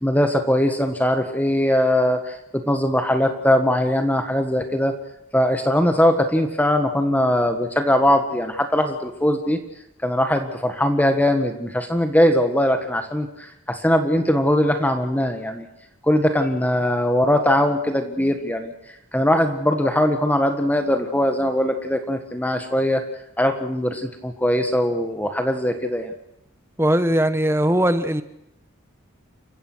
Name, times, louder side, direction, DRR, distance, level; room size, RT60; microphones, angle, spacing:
voice 1, 0.0-4.9 5.3-9.6 10.0-15.7 16.0-18.7 19.1-23.0 23.4-26.1, left 1 dB, 5° left, 6 dB, 1.6 m, -20 dB
voice 2, 26.8-28.2, right 1 dB, 10° right, 10 dB, 1.2 m, -19 dB
29.0 x 15.5 x 6.3 m, 0.85 s
head